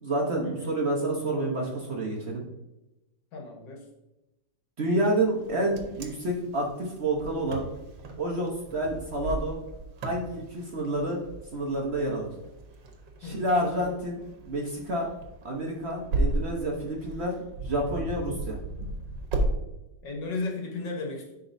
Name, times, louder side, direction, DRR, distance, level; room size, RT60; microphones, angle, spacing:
voice 1, 0.0-2.5 4.8-7.7 8.2-9.6 10.0-11.2 11.5-12.3 13.2-15.1 15.4-17.3 17.6-18.6, right 1 dB, 45° right, -1 dB, 1.0 m, -29 dB
voice 2, 3.3-3.8 13.2-13.4 20.0-21.3, left 3 dB, 75° left, 1 dB, 1.9 m, -34 dB
Wind, 5.4-19.5, right 2 dB, 75° right, 1.6 m, -35 dB
10.0 x 4.1 x 2.6 m, 0.96 s
omnidirectional pair, 1.9 m